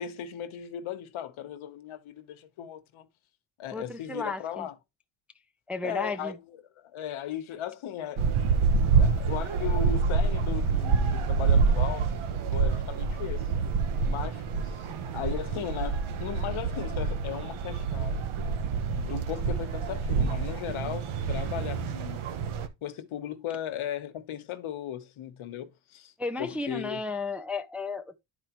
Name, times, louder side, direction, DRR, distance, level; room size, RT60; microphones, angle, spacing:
voice 1, 0.0-3.1 3.6-4.7 5.8-6.3 6.8-8.3 9.0-13.5 14.1-14.9 15.1-18.2 18.9-22.2 22.8-26.1 26.4-27.0, left 10 dB, 70° left, 1.1 m, -37 dB
voice 2, 3.7-4.7 5.7-6.4 26.2-28.2, left 3 dB, 5° right, 0.4 m, -33 dB
sound 1, 8.2-22.7, right 5 dB, 75° right, 1.1 m, -27 dB
10.5 x 4.4 x 3.0 m
cardioid pair, 115°, 50 cm